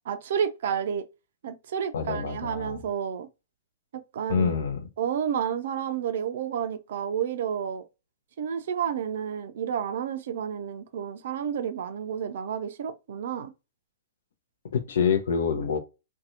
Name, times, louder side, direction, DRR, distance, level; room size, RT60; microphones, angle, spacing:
voice 1, 0.1-1.0 1.4-3.3 3.9-4.6 5.0-7.8 8.4-13.5, right 8 dB, 55° right, 0.4 m, -30 dB
voice 2, 1.9-2.8 4.3-4.8 14.7-15.8, left 6 dB, 60° left, 0.6 m, -26 dB
2.7 x 2.2 x 2.5 m
figure-of-eight pair, 110°, 0 cm